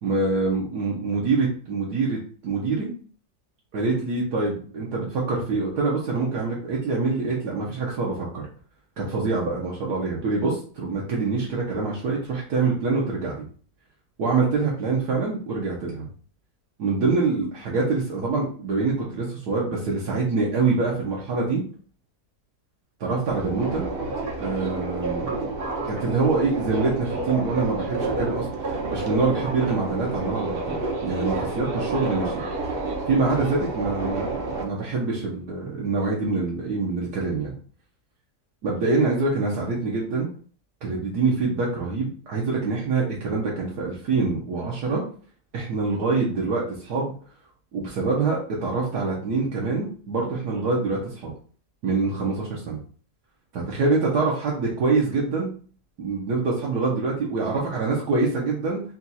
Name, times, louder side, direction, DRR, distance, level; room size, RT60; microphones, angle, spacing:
voice 1, 0.0-2.9 3.7-8.5 9.0-13.5 14.2-16.1 16.8-21.6 23.0-23.8 24.4-25.5 25.9-32.3 33.1-37.5 38.6-40.3 40.8-45.0 45.5-47.1 47.7-51.3 51.8-52.8 53.5-55.5 56.0-58.8, right 3 dB, 75° right, -4 dB, 1.5 m, -25 dB
Subway metro underground, 23.3-34.6, right 3 dB, 45° right, 0.8 m, -29 dB
4.4 x 2.4 x 4.1 m, 0.42 s
omnidirectional pair, 1.7 m